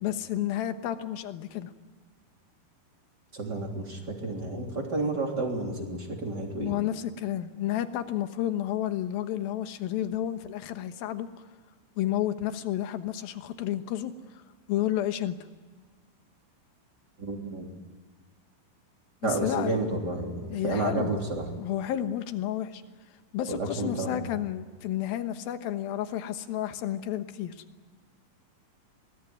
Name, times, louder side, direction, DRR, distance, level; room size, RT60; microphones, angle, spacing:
voice 1, 0.0-1.7 6.6-11.3 12.0-14.1 14.7-15.4 19.2-19.8 20.5-21.1 21.6-22.8 23.3-27.5, left 12 dB, 70° left, 9 dB, 2.9 m, -31 dB
voice 2, 3.3-6.7 17.2-17.7 19.2-21.4 23.5-24.2, right 2 dB, 25° right, 1 dB, 3.4 m, -31 dB
25.0 x 20.0 x 9.4 m, 1.4 s
omnidirectional pair, 4.6 m